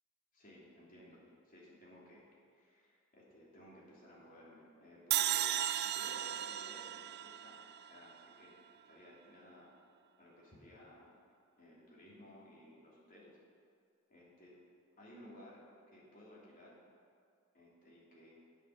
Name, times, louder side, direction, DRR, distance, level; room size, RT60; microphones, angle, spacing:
voice 1, 0.3-7.6 7.9-8.6 8.8-9.7 10.2-11.1 11.6-13.4 14.1-14.5 15.0-15.6 15.9-16.8 17.5-18.3, left 1 dB, 45° left, -5 dB, 3.0 m, -57 dB
sound 1, 5.1-8.3, right 12 dB, 50° right, 0.4 m, -36 dB
9.3 x 8.5 x 6.7 m, 2.3 s
head